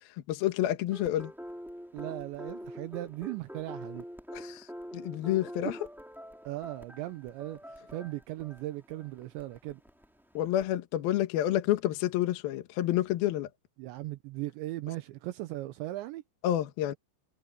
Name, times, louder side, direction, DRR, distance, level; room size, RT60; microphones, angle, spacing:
voice 1, 0.3-1.3 4.3-4.7 4.9-5.8 10.3-13.5 16.4-16.9, left 13 dB, 70° left, 2.5 m, -29 dB
sound 1, 0.9-10.7, equal, ahead, 1.2 m, -45 dB
voice 2, 1.9-4.1 6.4-9.8 13.8-16.2, right 16 dB, 80° right, 3.0 m, -38 dB
omnidirectional pair, 5.6 m